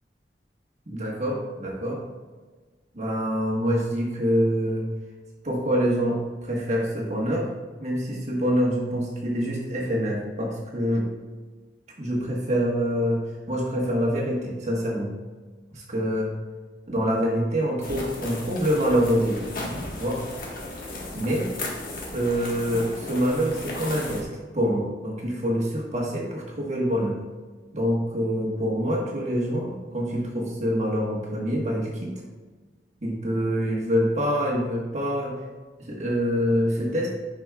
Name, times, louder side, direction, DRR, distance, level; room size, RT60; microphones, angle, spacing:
voice 1, 0.9-2.0 2.9-4.9 5.4-7.5 7.8-11.1 12.0-15.1 15.7-16.3 16.9-19.5 19.9-20.2 21.1-21.5 22.1-24.3 24.5-27.1 27.7-32.1 33.0-35.4 35.9-37.1, equal, 40° right, -3 dB, 1.4 m, -25 dB
sound 1, 17.8-24.2, left 2 dB, 55° left, 1.4 m, -35 dB
10.0 x 6.0 x 2.3 m, 1.4 s
head